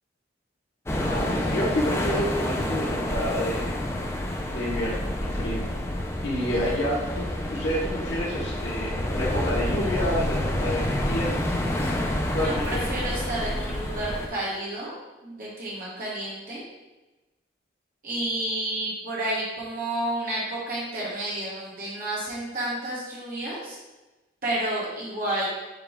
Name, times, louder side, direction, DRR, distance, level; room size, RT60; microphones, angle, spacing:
sound 1, 0.9-14.3, left 1 dB, 15° left, 0.3 m, -28 dB
voice 1, 1.0-3.8 4.5-5.6 6.2-11.4 12.3-12.9, equal, 80° left, -6 dB, 1.0 m, -29 dB
voice 2, 6.3-6.8 11.8-14.9 15.2-16.6 18.0-23.8 24.4-25.5, right 1 dB, 50° right, -6 dB, 1.3 m, -31 dB
6.7 x 2.3 x 3.5 m, 1.1 s
head